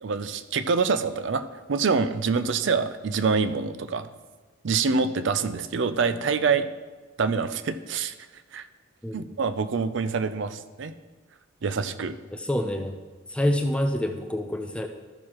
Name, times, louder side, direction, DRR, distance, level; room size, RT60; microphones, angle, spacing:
voice 1, 0.0-1.4 1.7-4.1 4.6-6.7 7.2-8.1 8.5-8.7 9.1-10.9 11.6-12.1, right 5 dB, 60° right, 12 dB, 0.4 m, -25 dB
voice 2, 12.3-12.9 13.3-14.9, left 1 dB, 5° left, 5 dB, 0.4 m, -26 dB
14.0 x 6.5 x 3.0 m, 1.3 s
head